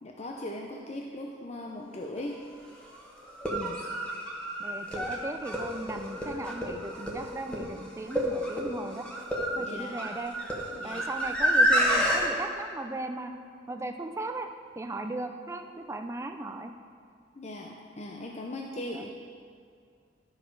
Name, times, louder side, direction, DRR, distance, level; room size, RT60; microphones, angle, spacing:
voice 1, 0.0-2.4 9.5-10.0 10.7-11.0 17.3-19.1, left 1 dB, 35° left, 0 dB, 0.6 m, -39 dB
sound 1, 2.2-2.3 3.3-12.2, equal, 5° left, 1.2 m, -29 dB
voice 2, 4.6-9.1 9.6-10.3 10.8-13.3 13.7-14.5 14.8-16.7 18.9-19.0, right 2 dB, 15° right, 5 dB, 0.5 m, -37 dB
12.0 x 6.0 x 4.6 m, 2.2 s
head